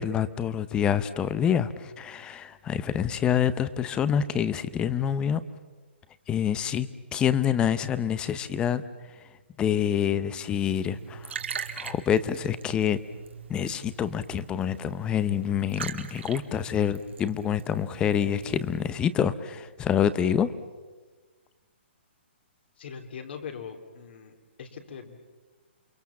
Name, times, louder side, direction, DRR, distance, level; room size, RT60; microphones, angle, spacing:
voice 1, 0.0-5.4 6.3-8.8 9.6-11.4 11.8-13.0 13.5-20.5, left 9 dB, 15° left, 15 dB, 0.8 m, -27 dB
Liquid, 10.8-18.9, right 7 dB, 75° right, 2.2 m, -41 dB
voice 2, 22.8-25.2, left 6 dB, 60° left, 4 dB, 3.2 m, -41 dB
28.5 x 22.5 x 7.2 m, 1.4 s
hypercardioid pair, 155°, 6 cm